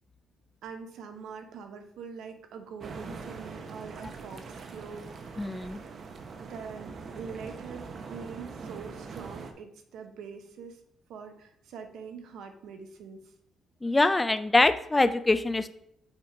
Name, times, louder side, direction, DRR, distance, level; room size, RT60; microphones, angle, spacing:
voice 1, 0.6-5.6 6.4-10.8 11.1-13.3, right 6 dB, 80° right, 6 dB, 0.9 m, -44 dB
sound 1, 2.8-9.5, right 4 dB, 50° right, 0.8 m, -42 dB
voice 2, 5.4-5.8 13.8-15.7, left 2 dB, 20° left, 11 dB, 0.4 m, -24 dB
5.9 x 3.7 x 4.4 m, 0.76 s
cardioid pair, 90°, 0 cm